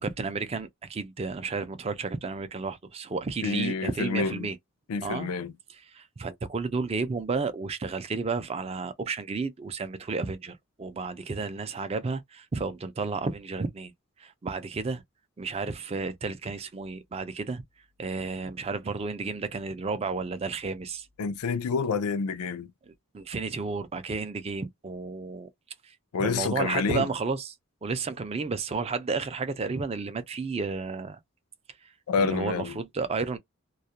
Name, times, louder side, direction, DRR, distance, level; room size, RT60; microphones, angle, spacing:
voice 1, 0.0-4.6 5.0-5.3 5.9-13.9 14.2-15.0 15.4-17.6 18.0-21.1 22.9-25.5 26.2-27.5 27.8-31.2 32.2-33.4, right 4 dB, 25° right, 0.4 m, -32 dB
voice 2, 3.4-4.5 4.9-5.5 21.2-22.7 26.1-27.1 32.1-32.8, left 5 dB, 90° left, 0.4 m, -28 dB
2.3 x 2.1 x 2.8 m
head